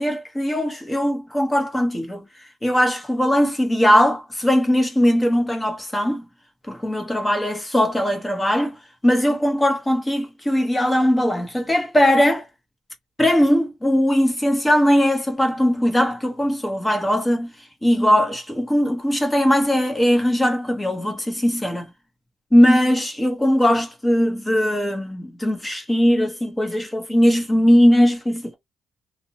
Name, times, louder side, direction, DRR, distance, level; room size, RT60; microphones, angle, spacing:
voice 1, 0.0-2.2 2.6-6.2 6.7-8.7 9.0-12.5 13.2-17.5 17.8-21.9 22.5-28.5, equal, 15° left, 0.9 m, -19 dB
2.5 x 2.0 x 2.7 m
cardioid pair, 90°, 0 cm